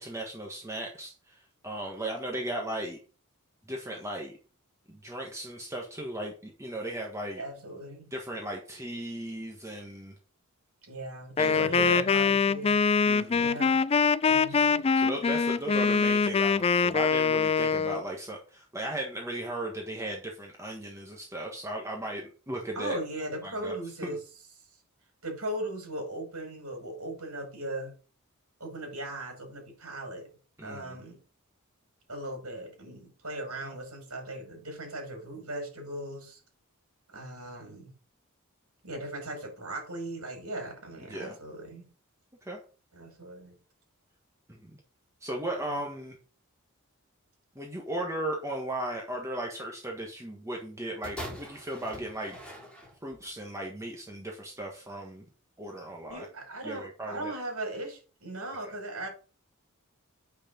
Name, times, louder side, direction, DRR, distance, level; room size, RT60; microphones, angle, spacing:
voice 1, 0.0-3.0 3.7-4.3 4.9-7.4 8.1-10.1 11.4-12.0 13.1-13.5 14.5-14.6 14.9-23.0 23.4-23.8 30.6-31.0 33.6-33.7 41.0-41.4 42.4-42.6 44.5-44.8 45.2-46.2 47.5-52.4 53.0-55.2 55.6-56.3 56.6-57.3 58.6-58.7, right 1 dB, 15° right, 1.7 m, -36 dB
voice 2, 7.3-8.1 10.8-12.8 13.3-13.8 14.2-14.9 22.7-24.2 25.2-27.9 28.6-30.3 30.6-31.2 32.1-36.4 37.1-37.9 38.8-41.9 42.9-43.6 45.5-45.8 56.1-59.1, right 1 dB, 75° right, 6.1 m, -38 dB
Wind instrument woodwind instrument, 11.4-18.0, left 5 dB, 25° left, 0.3 m, -24 dB
sound 1, 51.0-53.3 54.1-54.2, equal, 5° left, 4.4 m, -42 dB
8.4 x 6.6 x 5.4 m
head